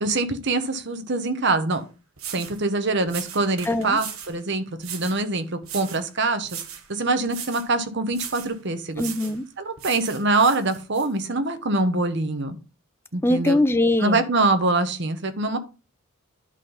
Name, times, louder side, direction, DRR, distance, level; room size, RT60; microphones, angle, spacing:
voice 1, 0.0-1.8 2.3-6.6 6.9-9.1 9.6-12.5 13.1-13.6 14.0-15.6, right 3 dB, 55° right, 1.1 m, -24 dB
sound 1, 1.7-1.8 2.2-2.6 3.1-4.4 4.8-5.2 5.6-6.1 6.4-6.9 7.3-7.7 8.1-8.5 9.0-9.4 9.8-11.1, right 8 dB, 80° right, 1.2 m, -37 dB
voice 2, 3.7-4.0 9.0-9.4 13.2-14.2, left 1 dB, 10° left, 0.5 m, -22 dB
10.5 x 4.0 x 5.2 m
head